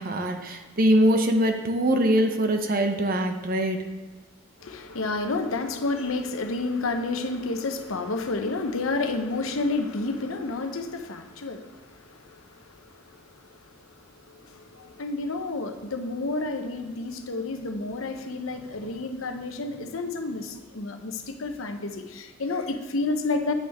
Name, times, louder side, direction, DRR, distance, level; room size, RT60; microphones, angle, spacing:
voice 1, 0.0-3.8, right 1 dB, 45° right, 0.8 m, -23 dB
voice 2, 4.6-11.7 12.2-12.4 14.3-23.5, left 3 dB, 80° left, 0.9 m, -30 dB
9.4 x 8.0 x 3.6 m
head